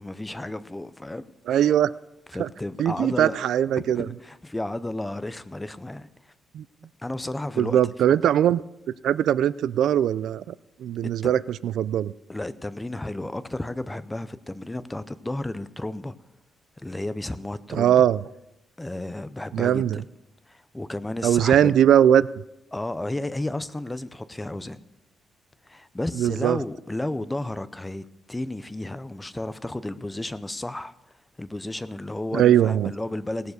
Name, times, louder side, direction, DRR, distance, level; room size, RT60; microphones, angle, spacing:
voice 1, 0.0-1.7 2.3-3.4 3.8-6.3 7.0-7.8 8.2-8.3 11.0-11.4 12.3-16.1 16.8-18.1 18.8-20.0 20.5-21.8 22.7-24.8 25.7-31.0 31.4-33.5, left 1 dB, 10° left, 13 dB, 0.5 m, -33 dB
voice 2, 1.5-1.9 2.4-2.5 2.8-4.1 6.5-6.6 7.6-8.6 9.0-10.5 10.8-12.1 17.7-18.2 19.5-20.0 21.2-22.3 26.2-26.6 32.3-32.9, right 10 dB, 75° right, 18 dB, 0.3 m, -20 dB
17.5 x 7.1 x 6.4 m, 0.88 s
cardioid pair, 160°, 0 cm